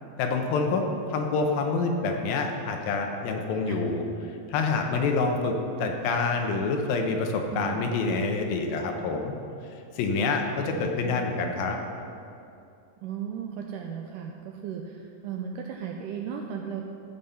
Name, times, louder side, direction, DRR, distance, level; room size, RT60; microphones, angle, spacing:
voice 1, 0.2-0.8 1.1-4.0 4.5-9.3 10.0-11.8, left 4 dB, 80° left, 3 dB, 2.7 m, -27 dB
voice 2, 7.5-7.9 10.7-11.3 13.0-16.9, right 7 dB, 85° right, 2 dB, 1.9 m, -36 dB
15.0 x 5.4 x 5.6 m, 2.6 s
omnidirectional pair, 4.3 m